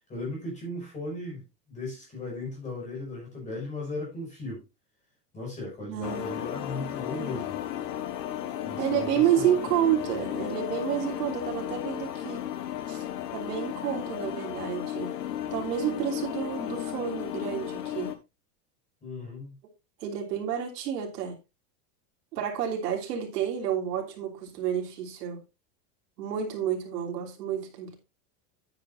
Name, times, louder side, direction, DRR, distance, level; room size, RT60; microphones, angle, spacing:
voice 1, 0.1-4.6 5.3-7.6 8.6-9.4 19.0-19.5, left 2 dB, 15° left, 6.0 m, -37 dB
voice 2, 5.9-6.3 8.8-12.4 12.9-13.0 13.3-15.2 15.5-18.1 20.0-21.4 22.3-25.4 26.2-28.0, right 9 dB, 85° right, 3.5 m, -30 dB
sound 1, 6.0-18.2, left 11 dB, 85° left, 1.6 m, -34 dB
10.5 x 9.4 x 2.6 m
supercardioid pair, 175°, 47 cm